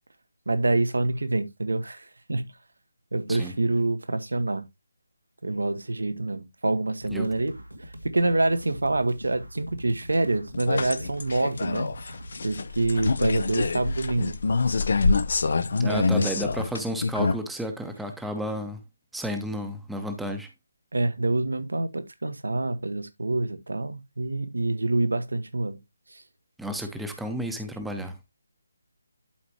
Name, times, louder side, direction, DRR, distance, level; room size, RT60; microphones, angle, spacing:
voice 1, 0.5-2.5 3.1-4.7 5.4-11.9 12.4-14.4 14.6-14.8 15.7-16.3 20.9-25.8 26.1-26.2, right 2 dB, 65° right, 1.1 m, -27 dB
sound 1, 7.0-12.6, equal, 80° right, 1.9 m, -43 dB
sound 2, 10.5-17.4, left 4 dB, 50° left, 0.6 m, -26 dB
voice 2, 15.8-18.8 19.1-20.5 26.6-28.1, equal, ahead, 1.0 m, -32 dB
11.5 x 5.0 x 3.0 m
figure-of-eight pair, 150°, 0 cm